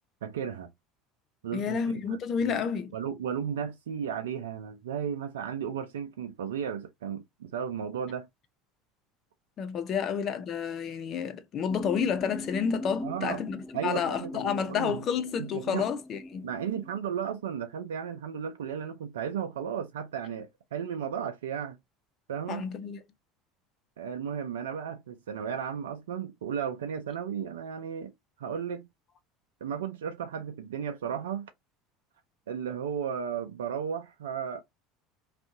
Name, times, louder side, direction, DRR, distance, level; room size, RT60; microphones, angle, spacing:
voice 1, 0.2-0.7 1.4-1.8 2.1-2.6 2.9-8.3 13.0-15.0 15.4-15.9 16.4-21.8 22.3-22.7 24.0-28.1 28.4-28.9 29.6-31.5 32.5-34.6, right 8 dB, 85° right, 0.5 m, -34 dB
voice 2, 1.5-2.9 9.6-16.5 22.5-23.0, left 7 dB, 45° left, 0.8 m, -30 dB
sound 1, 11.7-17.0, left 1 dB, 5° left, 0.9 m, -41 dB
2.6 x 2.5 x 3.7 m
hypercardioid pair, 85°, 0 cm